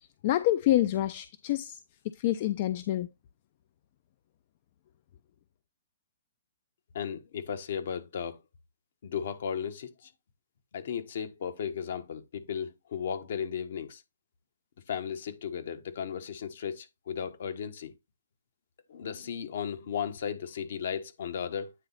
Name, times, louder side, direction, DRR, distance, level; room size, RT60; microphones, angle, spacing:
voice 1, 0.0-1.8 2.2-3.1, left 14 dB, 45° left, 0.5 m, -27 dB
voice 2, 6.9-8.4 9.0-10.1 10.7-14.0 14.9-17.9 18.9-21.7, left 7 dB, 60° left, 1.3 m, -35 dB
9.1 x 3.9 x 4.1 m
hypercardioid pair, 130°, 0 cm